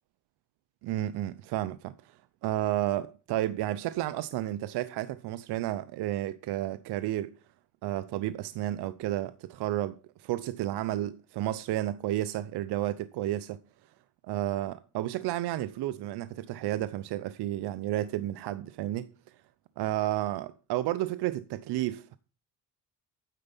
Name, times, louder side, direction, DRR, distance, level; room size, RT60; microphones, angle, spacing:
voice 1, 0.8-2.2 2.4-7.3 7.8-13.6 14.2-19.1 19.8-22.2, right 14 dB, 70° right, 0.6 m, -32 dB
9.3 x 8.1 x 5.4 m
cardioid pair, 125°, 41 cm